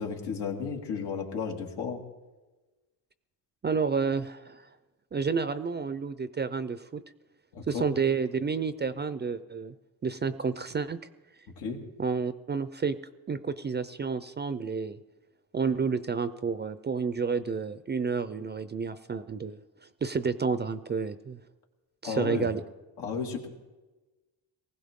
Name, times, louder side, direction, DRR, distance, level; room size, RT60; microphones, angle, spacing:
voice 1, 0.0-2.0 7.5-7.9 11.6-11.8 22.0-22.5 23.0-23.5, left 6 dB, 90° left, 1 dB, 2.2 m, -33 dB
voice 2, 3.6-4.6 5.1-7.0 7.7-9.7 10.0-11.0 12.0-13.0 13.3-15.0 15.5-19.6 20.0-21.4 22.0-22.6, right 5 dB, 25° right, 12 dB, 0.4 m, -30 dB
19.5 x 16.0 x 3.6 m, 1.2 s
cardioid pair, 120°, 39 cm